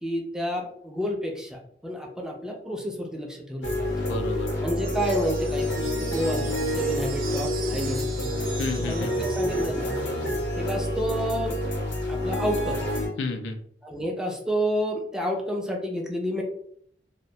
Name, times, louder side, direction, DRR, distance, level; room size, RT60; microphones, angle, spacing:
voice 1, 0.0-3.9 4.6-8.3 8.8-9.9 10.5-11.5 12.1-12.8 13.8-16.4, equal, 5° right, 0 dB, 0.3 m, -30 dB
sound 1, 3.6-13.1, left 1 dB, 70° left, 0.9 m, -28 dB
voice 2, 4.0-4.5 8.6-9.3 13.2-13.6, left 3 dB, 85° left, 5 dB, 0.4 m, -31 dB
sound 2, 4.7-10.2, right 5 dB, 55° right, 0.6 m, -41 dB
2.2 x 2.1 x 2.6 m, 0.66 s
head